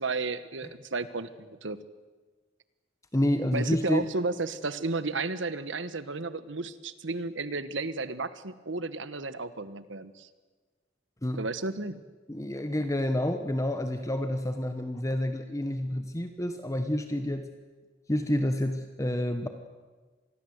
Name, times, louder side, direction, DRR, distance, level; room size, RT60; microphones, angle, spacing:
voice 1, 0.0-1.8 3.5-10.3 11.4-12.0, right 3 dB, 70° right, 13 dB, 1.3 m, -33 dB
voice 2, 3.1-4.1 11.2-11.4 12.3-17.5 18.1-19.5, left 1 dB, 15° left, 7 dB, 1.1 m, -29 dB
26.5 x 20.5 x 8.0 m, 1.4 s
head